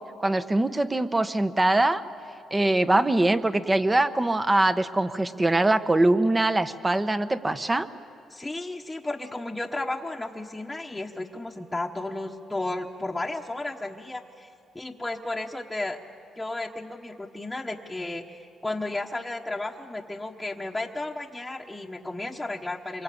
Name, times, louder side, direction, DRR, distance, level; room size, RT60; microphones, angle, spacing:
voice 1, 0.2-2.0 2.5-7.9, right 2 dB, 20° right, 11 dB, 1.1 m, -23 dB
voice 2, 8.3-14.5 14.7-16.0 16.4-23.0, left 2 dB, 10° left, -1 dB, 1.2 m, -33 dB
26.5 x 23.5 x 8.6 m, 2.5 s
cardioid pair, 90°, 0 cm